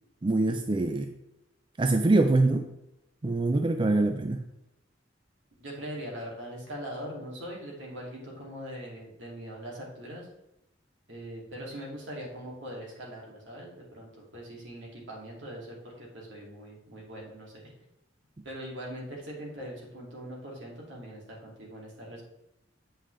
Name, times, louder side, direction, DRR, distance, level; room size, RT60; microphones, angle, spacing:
voice 1, 0.2-1.1 1.8-2.7 3.2-4.4, right 2 dB, 25° right, 6 dB, 0.4 m, -24 dB
voice 2, 5.6-10.3 11.1-17.7 18.4-22.2, equal, 75° right, -2 dB, 2.5 m, -41 dB
8.6 x 5.6 x 3.3 m, 0.91 s
head